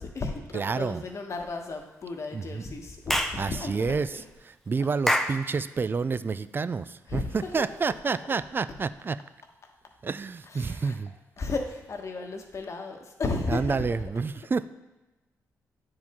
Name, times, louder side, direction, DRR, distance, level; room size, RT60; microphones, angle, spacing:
voice 1, 0.0-4.2 4.8-4.9 7.1-7.6 8.1-8.3 10.5-11.0 11.4-14.0, left 3 dB, 50° left, 3 dB, 1.2 m, -34 dB
voice 2, 0.5-1.0 2.3-2.6 3.4-4.1 4.7-9.2 10.0-11.1 13.5-14.6, right 4 dB, 35° right, 15 dB, 0.3 m, -29 dB
Clapping / Chirp tweet, 3.1-3.4 5.1-5.4, equal, 5° left, 0.6 m, -25 dB
9.3 x 4.8 x 3.6 m, 1.1 s
cardioid pair, 65°, 6 cm